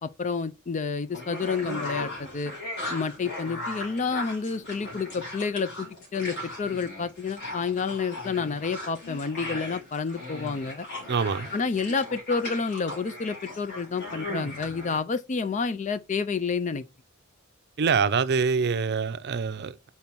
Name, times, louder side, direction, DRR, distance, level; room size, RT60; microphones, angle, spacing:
voice 1, 0.0-2.5 2.9-10.9 11.5-16.8, left 5 dB, 35° left, 0.4 m, -29 dB
sound 1, 1.1-15.0, left 1 dB, 55° left, 3.8 m, -38 dB
voice 2, 11.1-11.5 17.8-19.9, right 5 dB, 55° right, 0.5 m, -25 dB
5.4 x 4.2 x 4.5 m
head